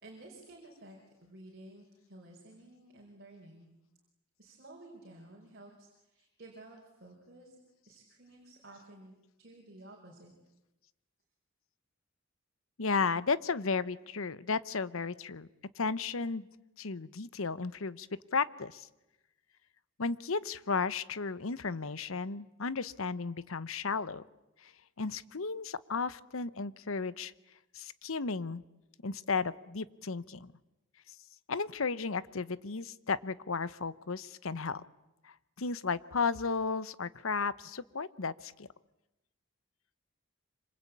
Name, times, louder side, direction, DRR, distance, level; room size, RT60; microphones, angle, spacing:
voice 1, 0.0-3.7 4.4-7.6 7.8-10.3, right 1 dB, 50° right, -1 dB, 5.3 m, -53 dB
voice 2, 12.8-15.5 15.8-16.5 16.8-18.1 18.3-18.9 20.0-24.2 24.6-24.7 25.0-27.3 27.7-28.6 29.0-30.5 31.5-34.8 35.2-38.7, left 4 dB, 75° left, 17 dB, 0.9 m, -34 dB
26.5 x 26.0 x 8.6 m, 0.96 s
head